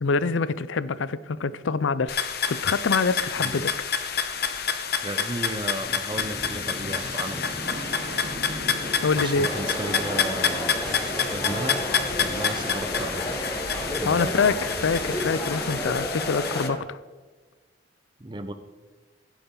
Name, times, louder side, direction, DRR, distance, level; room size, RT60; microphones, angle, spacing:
voice 1, 0.0-3.7 9.0-9.5 14.0-17.0, left 4 dB, 85° left, 16 dB, 0.5 m, -25 dB
sound 1, 2.1-16.7, left 7 dB, 55° left, 0.9 m, -28 dB
voice 2, 3.4-3.7 5.0-7.6 9.2-11.0 11.3-11.8 12.2-13.4 14.0-14.6 18.2-18.5, right 1 dB, 25° right, 8 dB, 0.8 m, -34 dB
sound 2, 6.1-16.0, equal, 45° right, 2.4 m, -37 dB
sound 3, 9.3-16.8, equal, 15° left, 1.2 m, -33 dB
16.5 x 8.2 x 3.9 m, 1.3 s
head